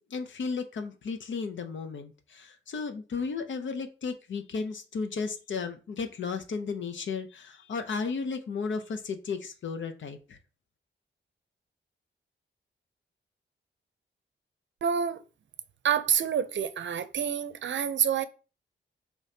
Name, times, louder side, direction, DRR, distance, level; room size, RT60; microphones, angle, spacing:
voice 1, 0.0-10.4, left 5 dB, 75° left, 0.7 m, -34 dB
voice 2, 14.8-15.2 15.8-18.2, right 8 dB, 70° right, 0.5 m, -27 dB
5.0 x 3.0 x 2.8 m
cardioid pair, 75°, 20 cm